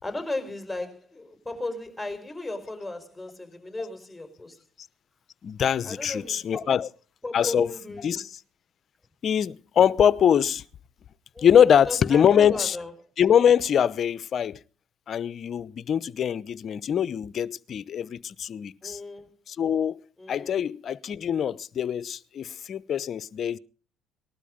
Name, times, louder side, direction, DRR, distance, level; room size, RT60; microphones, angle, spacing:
voice 1, 0.0-4.6 5.8-6.7 7.2-8.2 11.3-11.5 11.9-12.9 18.8-19.3 20.2-20.6, left 2 dB, 10° left, 4.7 m, -35 dB
voice 2, 5.4-6.9 7.3-8.4 9.2-10.6 11.4-12.8 13.2-14.6 15.1-19.0 19.5-20.0 20.3-23.6, left 8 dB, 50° left, 0.8 m, -23 dB
19.5 x 12.5 x 5.2 m
supercardioid pair, 75°, 0 cm